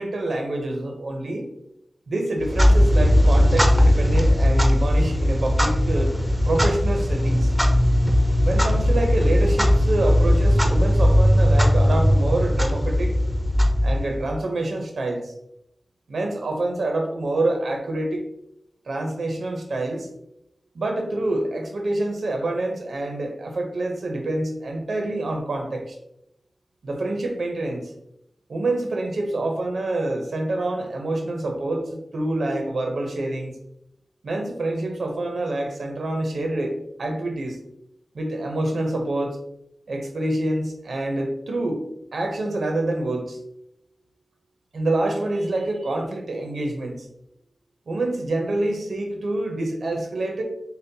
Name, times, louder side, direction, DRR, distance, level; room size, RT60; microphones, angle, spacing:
voice 1, 0.0-1.5 2.1-6.1 6.4-7.5 8.4-13.1 13.8-15.3 16.1-18.2 18.9-20.1 20.7-26.0 26.8-27.9 28.5-33.5 34.2-37.6 38.1-39.4 39.9-41.8 42.1-43.4 44.7-47.1 47.9-50.4, right 2 dB, 90° right, 3 dB, 0.6 m, -26 dB
Clock, 2.4-14.4, equal, ahead, 0.6 m, -18 dB
5.4 x 2.1 x 2.6 m, 0.79 s
cardioid pair, 50°, 0 cm